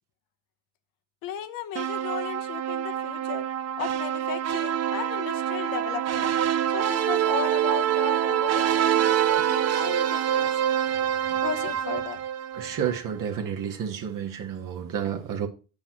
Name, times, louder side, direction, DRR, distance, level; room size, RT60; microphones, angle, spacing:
voice 1, 1.2-3.5 3.8-6.3 6.7-10.5 11.4-12.2, left 9 dB, 80° left, 1.0 m, -35 dB
sound 1, 1.8-13.0, right 10 dB, 50° right, 0.7 m, -26 dB
voice 2, 12.5-15.5, right 8 dB, 70° right, 1.6 m, -30 dB
8.7 x 5.9 x 3.0 m
cardioid pair, 80°, 34 cm